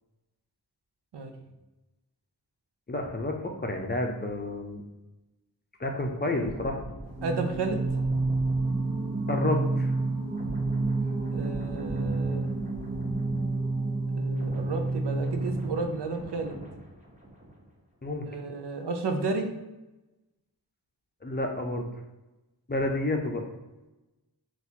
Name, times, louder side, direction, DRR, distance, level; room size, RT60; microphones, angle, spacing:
voice 1, 2.9-4.8 5.8-6.8 9.3-9.9 18.0-18.3 21.2-21.9 22.7-23.4, left 2 dB, 25° left, 3 dB, 0.5 m, -30 dB
sound 1, 6.3-13.8 14.1-17.8 18.1-18.4, right 1 dB, 20° right, 0.9 m, -44 dB
Singing, 7.1-16.0, right 3 dB, 55° right, 1.1 m, -29 dB
voice 2, 7.2-7.9 11.3-12.5 14.1-16.6 18.3-19.5, right 3 dB, 80° right, 5 dB, 0.5 m, -32 dB
4.1 x 2.3 x 2.7 m, 1.0 s
wide cardioid pair, 50°, 41 cm